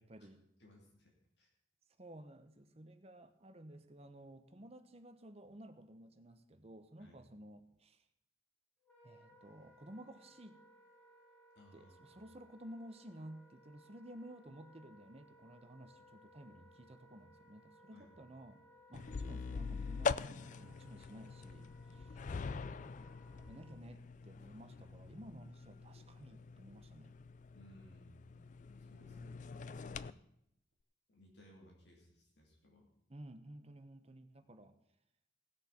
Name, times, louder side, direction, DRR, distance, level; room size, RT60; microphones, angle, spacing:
voice 1, 0.0-0.4 2.0-8.0 9.0-10.6 11.7-18.6 18.9-22.1 22.5-23.1 23.3-27.2 29.0-29.5 33.1-34.7, right 1 dB, 35° right, 9 dB, 0.9 m, -54 dB
voice 2, 0.6-1.5 7.0-7.2 11.5-12.2 17.9-18.4 21.9-22.7 24.7-25.0 27.5-28.4 28.8-29.2 29.5-30.2 31.1-32.9, left 1 dB, 60° left, -1 dB, 2.9 m, -62 dB
Wind instrument woodwind instrument, 8.8-23.8, equal, 10° left, 3.7 m, -64 dB
sound 1, 18.9-30.1, left 5 dB, 40° left, 0.3 m, -44 dB
18.0 x 6.6 x 5.8 m, 0.77 s
head